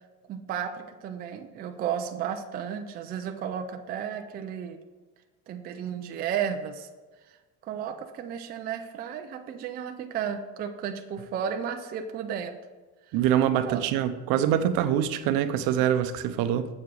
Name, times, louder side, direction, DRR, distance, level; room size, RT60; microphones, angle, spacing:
voice 1, 0.3-4.8 5.5-6.9 7.6-12.6 13.1-13.2 13.6-13.9, right 8 dB, 25° right, 5 dB, 0.3 m, -33 dB
voice 2, 13.1-16.7, right 10 dB, 65° right, 10 dB, 0.7 m, -24 dB
7.4 x 4.8 x 6.8 m, 1.3 s
cardioid pair, 180°, 37 cm